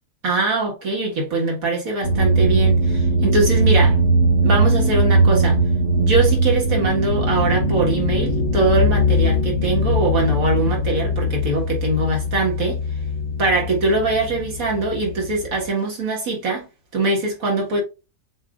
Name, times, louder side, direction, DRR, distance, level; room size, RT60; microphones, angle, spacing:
voice 1, 0.2-4.0 4.4-5.6 6.0-12.8 13.4-16.7 16.9-17.8, right 3 dB, 60° right, 1.9 m, -22 dB
sound 1, 2.0-15.6, right 1 dB, 55° left, 1.7 m, -20 dB
7.3 x 2.6 x 2.4 m
omnidirectional pair, 1.7 m